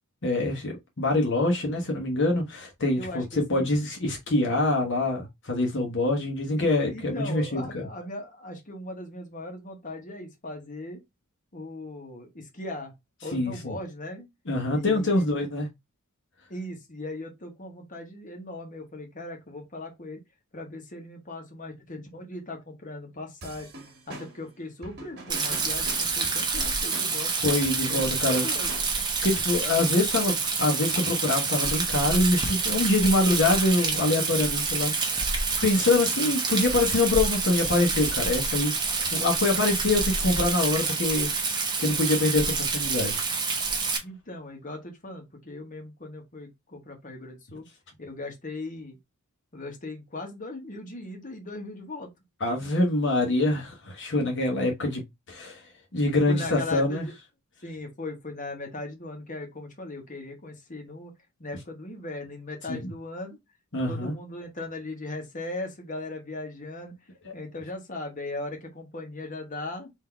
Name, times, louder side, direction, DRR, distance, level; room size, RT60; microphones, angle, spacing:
voice 1, 0.2-7.9 13.3-13.8 14.5-15.7 27.4-28.5 29.2-35.3 35.6-38.8 39.1-41.3 41.8-43.2 52.4-55.0 55.3-55.6 55.9-57.0 62.7-62.8 63.7-64.1 67.2-67.3, left 2 dB, 55° left, 1.0 m, -25 dB
voice 2, 2.9-3.7 6.6-11.0 11.5-12.9 13.2-14.3 14.7-15.3 16.5-20.2 20.5-23.7 24.1-27.3 27.9-28.7 44.0-47.6 48.0-49.0 49.5-52.1 56.3-57.1 57.6-61.1 61.4-63.4 63.9-66.9 67.3-69.9, left 2 dB, 35° left, 1.2 m, -38 dB
sound 1, 23.4-29.2, right 2 dB, 50° right, 1.5 m, -44 dB
Rain, 25.3-44.0, right 4 dB, 20° right, 1.0 m, -27 dB
3.9 x 2.8 x 4.4 m
head